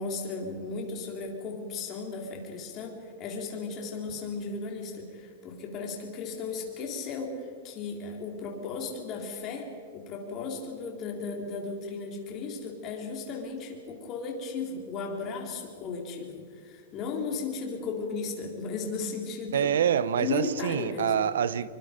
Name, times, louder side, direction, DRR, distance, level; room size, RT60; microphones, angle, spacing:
voice 1, 0.0-19.7 20.2-21.3, left 4 dB, 30° left, 1 dB, 3.9 m, -35 dB
voice 2, 19.5-21.7, right 8 dB, 85° right, 17 dB, 1.0 m, -26 dB
28.0 x 24.0 x 5.3 m, 2.1 s
supercardioid pair, 160°, 0 cm